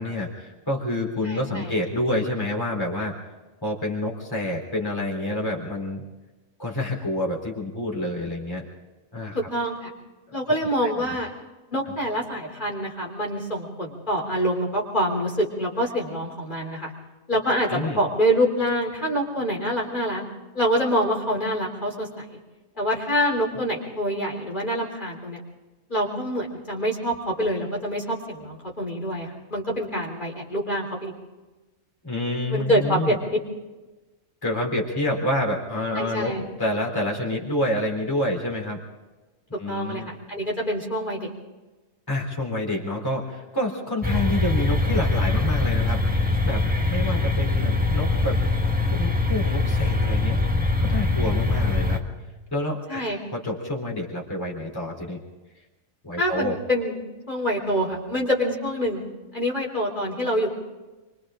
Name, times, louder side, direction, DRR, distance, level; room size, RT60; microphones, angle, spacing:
voice 1, 0.0-3.1 3.6-6.0 6.6-8.6 9.1-9.4 10.8-10.9 17.7-18.0 32.0-33.2 34.4-38.8 39.6-40.1 42.1-46.0 46.4-48.4 48.9-50.4 50.8-52.0 52.5-55.2 56.0-56.6, left 1 dB, 15° left, -2 dB, 3.7 m, -28 dB
voice 2, 1.2-1.7 9.3-9.9 10.3-11.3 11.7-16.9 17.3-20.2 20.5-22.4 22.8-25.4 25.9-31.1 32.5-33.2 35.9-36.4 39.7-41.3 52.9-53.2 56.2-59.0 59.3-60.5, equal, 35° left, -3 dB, 3.7 m, -26 dB
sound 1, 44.0-52.0, left 2 dB, 5° right, 1.4 m, -23 dB
28.5 x 24.5 x 3.8 m, 1.2 s
omnidirectional pair, 1.5 m